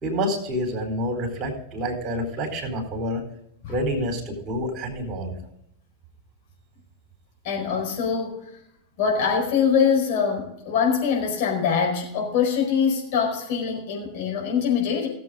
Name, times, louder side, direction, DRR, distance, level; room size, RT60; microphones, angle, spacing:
voice 1, 0.0-3.2 3.7-5.4, equal, 30° right, 3 dB, 4.1 m, -28 dB
voice 2, 7.4-8.4 9.0-15.1, left 6 dB, 45° left, 0 dB, 4.7 m, -23 dB
18.5 x 7.7 x 3.8 m, 0.79 s
figure-of-eight pair, 90°, 0 cm